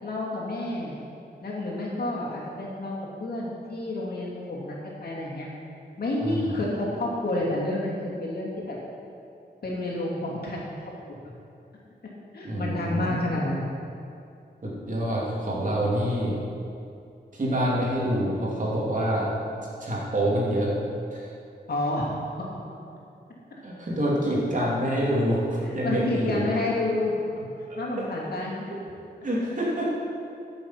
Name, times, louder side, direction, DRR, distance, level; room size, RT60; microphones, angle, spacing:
voice 1, 0.0-1.0 1.4-5.5 6.0-8.8 9.6-10.9 12.3-13.7 21.7-22.2 25.6-27.1 27.8-28.7, left 1 dB, 65° left, -4 dB, 2.8 m, -29 dB
voice 2, 6.2-6.6 12.4-13.3 14.6-16.4 17.3-19.3 19.8-20.8 21.1-21.3 23.6-26.4 27.7-28.0 29.2-29.9, equal, 50° right, -5 dB, 3.0 m, -26 dB
12.5 x 7.0 x 5.9 m, 2.5 s
wide cardioid pair, 100°, 17 cm